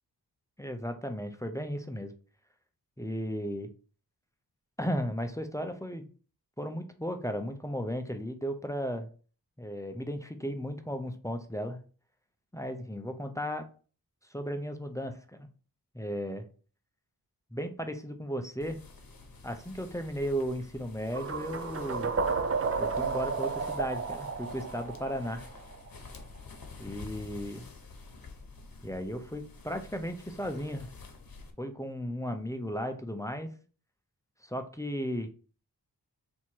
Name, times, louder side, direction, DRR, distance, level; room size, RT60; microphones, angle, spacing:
voice 1, 0.6-2.1 3.0-3.7 4.8-6.1 6.6-9.1 9.6-11.8 12.5-13.7 14.3-15.5 15.9-16.5 17.5-18.8 19.4-22.1 22.8-25.5 26.8-27.7 28.8-30.9 31.6-33.5 34.4-35.3, equal, 10° left, 6 dB, 0.6 m, -35 dB
sound 1, 18.6-31.5, left 3 dB, 60° left, 0.9 m, -49 dB
sound 2, 21.1-26.1, right 5 dB, 40° right, 0.5 m, -32 dB
3.5 x 2.9 x 4.4 m, 0.39 s
wide cardioid pair, 65°, 39 cm